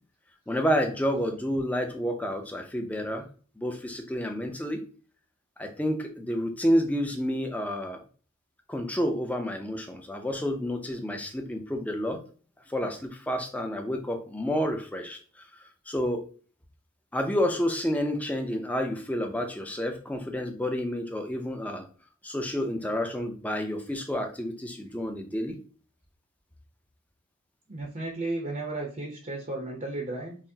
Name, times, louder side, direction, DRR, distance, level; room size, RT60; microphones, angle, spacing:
voice 1, 0.5-3.3 3.6-4.8 5.6-8.0 8.7-12.2 12.7-15.2 15.9-16.2 17.1-21.9 22.2-25.6, equal, 5° left, 4 dB, 0.5 m, -29 dB
voice 2, 27.7-30.4, right 2 dB, 35° right, 0 dB, 0.6 m, -34 dB
5.7 x 2.0 x 2.7 m, 0.40 s
head